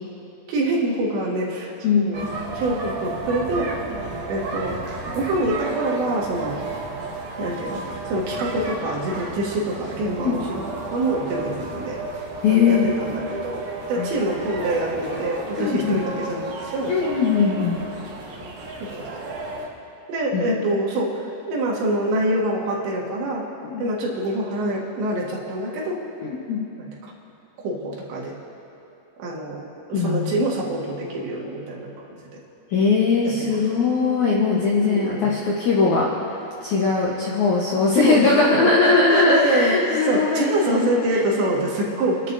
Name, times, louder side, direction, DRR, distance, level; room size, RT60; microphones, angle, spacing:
voice 1, 0.5-3.7 4.3-4.8 5.1-6.6 7.4-7.8 8.1-10.6 10.9-12.0 12.5-17.1 18.8-19.1 20.1-21.2 21.5-23.4 23.8-26.0 26.8-27.1 27.6-28.3 29.2-29.6 29.9-32.2 33.2-33.6 34.6-35.3 37.9-42.3, right 1 dB, 85° right, -3 dB, 4.0 m, -25 dB
voice 2, 1.8-2.3 10.2-10.4 12.4-12.9 14.0-14.1 15.6-16.0 16.9-17.8 20.3-20.5 23.6-23.8 26.2-26.6 29.9-30.3 32.7-36.1 36.6-41.2, left 4 dB, 70° left, -5 dB, 1.8 m, -20 dB
sound 1, 2.1-19.7, right 3 dB, 65° right, 3.0 m, -33 dB
30.0 x 10.5 x 2.6 m, 2.8 s
omnidirectional pair, 4.9 m